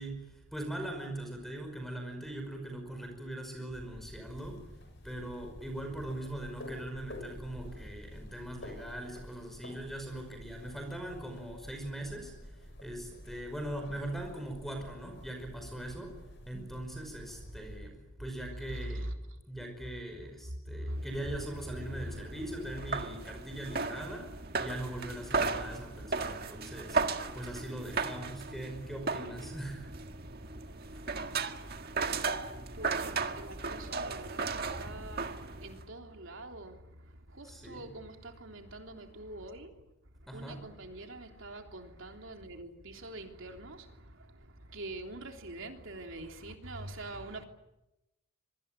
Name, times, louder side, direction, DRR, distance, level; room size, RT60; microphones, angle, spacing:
voice 1, 0.0-4.6 5.0-16.2 16.4-19.1 19.5-30.0 30.9-31.0 37.4-37.9 40.3-40.6, right 1 dB, ahead, 5.3 m, -41 dB
sound 1, 3.7-17.8, left 1 dB, 55° left, 7.0 m, -50 dB
voice 2, 18.5-19.4 20.7-21.0 21.9-22.3 32.5-39.8 40.1-47.4, right 1 dB, 65° right, 3.4 m, -44 dB
sound 2, 21.0-35.8, right 4 dB, 45° right, 1.7 m, -36 dB
26.5 x 24.0 x 9.0 m
head